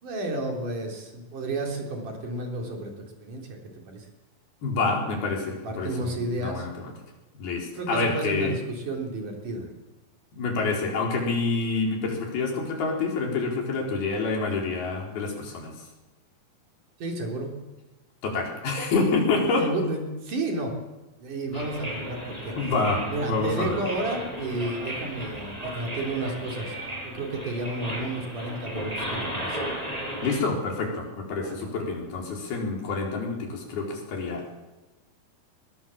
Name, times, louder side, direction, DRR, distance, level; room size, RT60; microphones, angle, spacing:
voice 1, 0.0-2.9 3.2-3.5 3.9-4.1 5.5-6.7 7.8-9.7 17.0-17.5 19.6-20.8 21.2-22.6 23.1-26.8 27.0-29.6 31.4-31.7, right 2 dB, 55° right, 2 dB, 5.0 m, -31 dB
voice 2, 4.6-6.9 7.4-8.5 10.3-15.7 18.2-19.7 21.5-21.7 22.6-23.8 30.2-34.4, left 3 dB, 85° left, 0 dB, 6.3 m, -27 dB
sound 1, 21.5-30.4, right 1 dB, 10° right, 7.3 m, -35 dB
21.5 x 20.5 x 7.3 m, 1.1 s
omnidirectional pair, 4.3 m